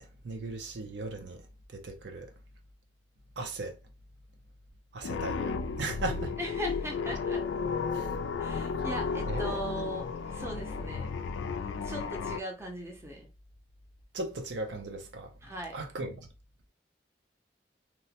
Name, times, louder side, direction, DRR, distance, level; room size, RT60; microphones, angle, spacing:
voice 1, 0.0-1.4 1.7-2.3 3.4-3.8 4.9-5.5 5.8-6.3 7.9-8.1 9.3-9.6 14.1-15.3 15.7-16.3, right 2 dB, 65° right, 0.5 m, -37 dB
sound 1, 5.0-12.4, left 5 dB, 80° left, 0.3 m, -33 dB
voice 2, 6.4-7.4 8.4-10.1 10.3-11.1 11.8-13.3 15.4-15.8, right 1 dB, 15° right, 0.6 m, -38 dB
3.0 x 2.1 x 2.8 m
head